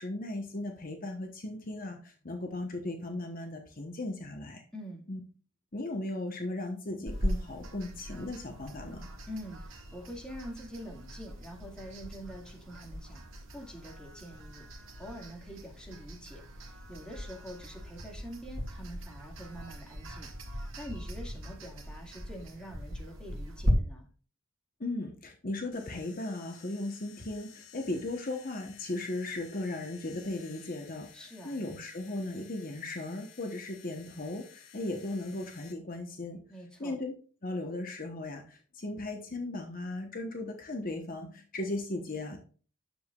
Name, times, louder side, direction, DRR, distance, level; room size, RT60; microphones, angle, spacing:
voice 1, 0.0-4.6 5.1-5.2 5.7-9.1 24.8-36.4 36.8-37.1 37.4-42.4, left 2 dB, 40° left, 3 dB, 1.1 m, -37 dB
voice 2, 4.7-5.0 9.3-13.2 13.5-14.6 15.0-20.3 20.5-24.1 31.1-31.6 36.5-37.0, equal, 5° left, -1 dB, 2.0 m, -45 dB
sound 1, 7.1-23.7, equal, 60° right, 2.0 m, -39 dB
sound 2, 25.7-35.7, left 7 dB, 75° left, 1.7 m, -55 dB
10.0 x 7.1 x 2.4 m, 0.39 s
head